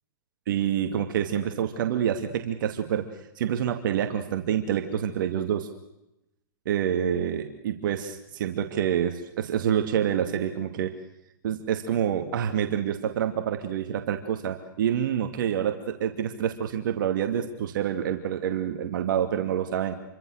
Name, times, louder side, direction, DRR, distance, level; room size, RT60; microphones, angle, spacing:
voice 1, 0.5-3.1 3.4-5.7 6.7-11.0 11.4-19.9, right 9 dB, 60° right, 6 dB, 2.5 m, -27 dB
28.5 x 24.5 x 6.6 m, 0.87 s
hypercardioid pair, 140°, 12 cm